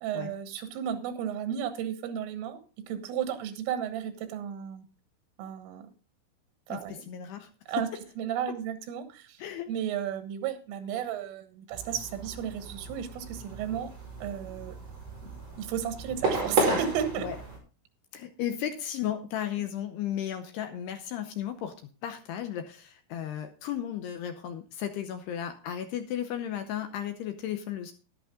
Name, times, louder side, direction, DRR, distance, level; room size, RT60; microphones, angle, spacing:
voice 1, 0.0-2.6 2.9-4.9 5.4-5.9 6.7-7.0 7.7-7.9 8.2-9.4 9.7-13.9 14.2-14.8 15.6-17.3, right 9 dB, 85° right, 9 dB, 3.9 m, -33 dB
voice 2, 6.7-7.5 7.8-7.9 9.4-9.7 17.2-17.4 18.1-21.7 22.0-27.9, left 10 dB, 80° left, 7 dB, 2.5 m, -34 dB
sound 1, 11.7-17.6, right 3 dB, 30° right, 5.8 m, -33 dB
11.0 x 11.0 x 3.7 m, 0.35 s
omnidirectional pair, 5.6 m